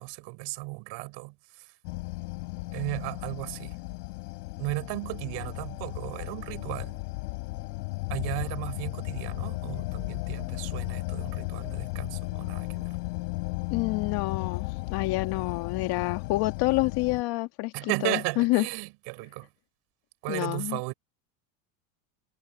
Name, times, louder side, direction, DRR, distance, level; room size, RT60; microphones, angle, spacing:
voice 1, 0.0-1.7 2.7-3.8 4.6-7.0 8.1-12.9 17.7-19.5 20.2-20.9, right 25 dB, 55° right, 4.4 m, -35 dB
sound 1, 1.8-17.2, left 24 dB, 70° left, 5.1 m, -35 dB
voice 2, 13.7-18.7 20.3-20.8, left 20 dB, 50° left, 2.2 m, -28 dB
supercardioid pair, 135°, 49 cm